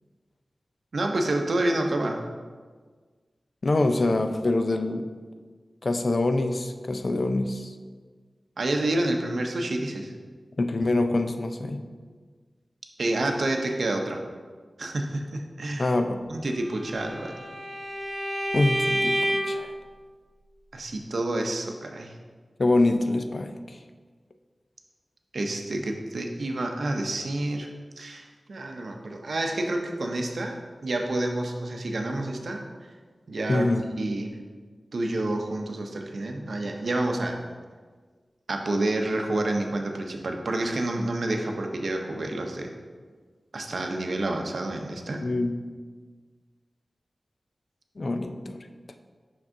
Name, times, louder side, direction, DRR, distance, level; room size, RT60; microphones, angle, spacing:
voice 1, 0.9-2.2 8.6-10.1 13.0-14.2 14.8-16.0 16.3-17.4 20.7-22.1 25.3-27.7 28.0-30.6 30.8-32.6 33.3-33.7 34.0-34.3 34.9-37.4 38.5-42.7 43.5-45.3, right 2 dB, 75° right, 3 dB, 0.6 m, -28 dB
voice 2, 3.6-5.1 5.8-7.7 10.6-11.8 15.8-16.2 18.5-19.7 22.6-23.8 33.5-33.8 45.2-45.6 48.0-48.6, left 2 dB, 50° left, 7 dB, 0.4 m, -25 dB
Bowed string instrument, 16.6-19.7, equal, 20° right, 0.7 m, -29 dB
6.0 x 6.0 x 2.6 m, 1.5 s
wide cardioid pair, 100°, 0 cm